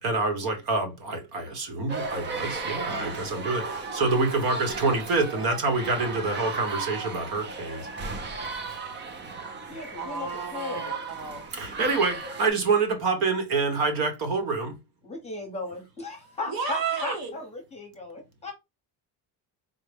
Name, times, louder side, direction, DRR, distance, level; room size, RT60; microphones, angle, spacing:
voice 1, 0.0-7.9 9.7-9.8 11.5-14.8, right 3 dB, 55° right, 1.1 m, -27 dB
sound 1, 1.9-12.5, right 4 dB, 25° right, 0.4 m, -35 dB
voice 2, 5.3-6.1 10.0-11.4 16.5-17.4, right 5 dB, 75° right, 1.3 m, -33 dB
voice 3, 9.7-11.0 15.0-18.5, left 2 dB, 15° left, 0.9 m, -36 dB
3.9 x 2.1 x 3.4 m
cardioid pair, 170°, 44 cm